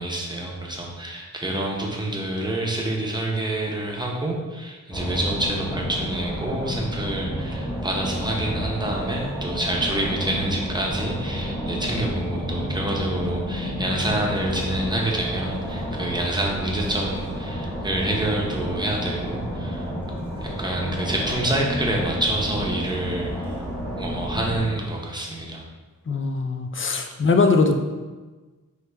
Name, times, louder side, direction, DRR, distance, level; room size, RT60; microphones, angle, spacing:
voice 1, 0.0-19.9 20.4-23.5 24.0-25.6, right 1 dB, 15° right, -2 dB, 0.8 m, -27 dB
sound 1, 4.9-24.6, equal, 5° left, 1.3 m, -30 dB
voice 2, 26.1-27.7, left 4 dB, 40° left, 6 dB, 0.4 m, -21 dB
4.6 x 3.2 x 3.4 m, 1.3 s
wide cardioid pair, 90°, 33 cm